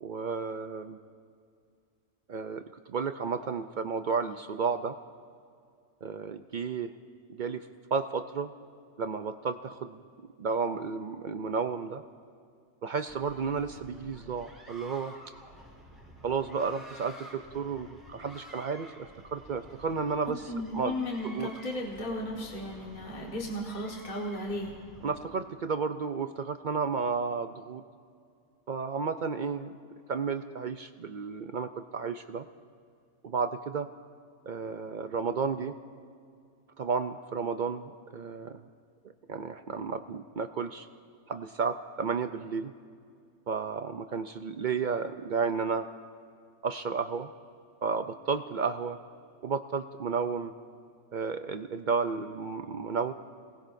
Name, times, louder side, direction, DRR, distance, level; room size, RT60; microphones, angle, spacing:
voice 1, 0.0-1.0 2.3-5.0 6.0-6.9 7.3-8.5 9.0-10.0 10.4-12.0 12.8-15.1 16.2-20.9 21.2-21.5 25.0-27.8 28.7-29.7 30.1-32.5 33.2-33.9 34.5-35.8 36.8-38.6 39.3-40.9 41.3-42.7 43.5-45.9 46.6-47.3 47.8-49.0 49.4-50.5 51.1-53.1, right 5 dB, 65° right, 8 dB, 0.4 m, -32 dB
sound 1, 13.1-25.2, right 1 dB, ahead, 4.6 m, -51 dB
voice 2, 20.5-24.7, left 1 dB, 35° left, -2 dB, 1.7 m, -35 dB
27.5 x 19.5 x 2.6 m, 2.3 s
omnidirectional pair, 1.4 m